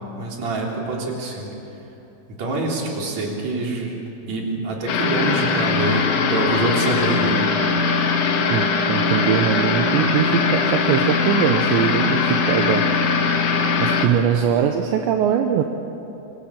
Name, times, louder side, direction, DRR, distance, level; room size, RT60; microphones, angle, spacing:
voice 1, 0.1-1.5 2.4-4.0 4.3-7.4, right 2 dB, 40° right, -1 dB, 4.2 m, -25 dB
sound 1, 4.9-14.1, left 4 dB, 80° left, 4.1 m, -20 dB
voice 2, 8.5-12.9 13.8-15.6, right 9 dB, 75° right, 5 dB, 3.1 m, -21 dB
25.5 x 22.5 x 7.3 m, 3.0 s
omnidirectional pair, 5.5 m